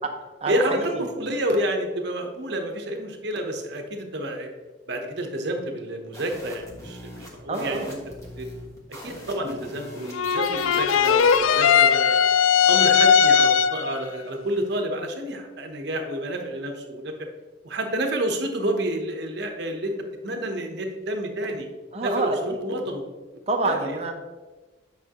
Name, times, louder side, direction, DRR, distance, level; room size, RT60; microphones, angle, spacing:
voice 1, 0.4-4.5 4.9-8.0 8.4-8.5 8.9-12.2 12.7-17.1 17.6-19.9 20.2-21.7 22.0-23.0 23.6-24.0, right 1 dB, 55° right, 3 dB, 1.0 m, -29 dB
sound 1, 6.1-11.4, equal, 15° left, 1.4 m, -41 dB
voice 2, 7.5-7.9 21.9-22.4 23.5-24.1, right 3 dB, 30° right, 3 dB, 0.9 m, -26 dB
sound 2, 10.1-14.0, left 7 dB, 90° left, 0.3 m, -18 dB
8.9 x 5.8 x 3.0 m, 1.2 s
head